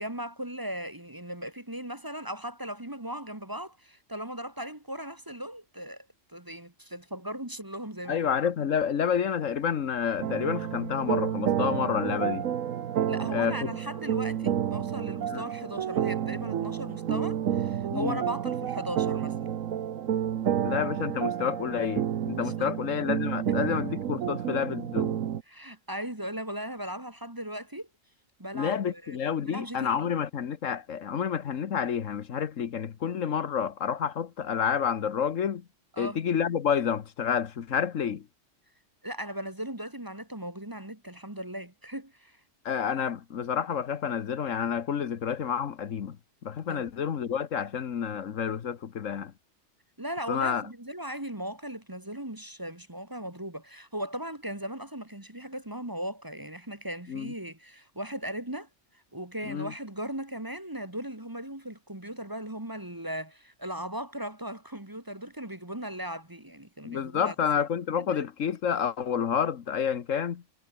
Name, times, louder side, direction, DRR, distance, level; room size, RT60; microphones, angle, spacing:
voice 1, 0.0-8.3 13.1-19.6 22.4-22.8 23.5-23.6 25.5-27.9 28.4-29.2 29.4-30.1 35.9-36.2 39.0-42.4 46.7-46.8 50.0-58.7 59.1-67.4 68.0-68.3, right 1 dB, 15° right, 1.8 m, -38 dB
voice 2, 8.1-12.5 13.3-13.7 15.3-15.4 17.9-18.2 20.6-25.2 28.5-35.6 36.0-38.2 42.6-46.2 46.4-49.3 50.3-50.6 57.1-57.3 59.4-59.7 66.8-70.4, left 7 dB, 75° left, 1.5 m, -29 dB
sound 1, 10.2-25.4, right 9 dB, 85° right, 1.3 m, -30 dB
omnidirectional pair, 1.3 m